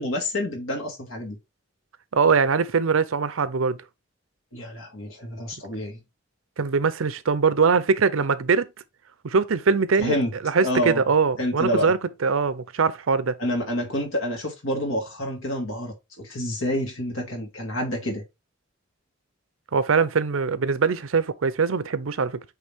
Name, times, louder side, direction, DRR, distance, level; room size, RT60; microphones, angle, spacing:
voice 1, 0.0-1.4 4.5-6.0 10.0-10.3 10.6-11.0 11.4-11.9 13.4-18.2, left 1 dB, 90° left, 2.2 m, -28 dB
voice 2, 2.1-3.8 6.6-8.7 9.2-10.2 10.4-13.4 19.7-22.4, right 5 dB, 85° right, 0.6 m, -22 dB
8.2 x 3.3 x 3.5 m
head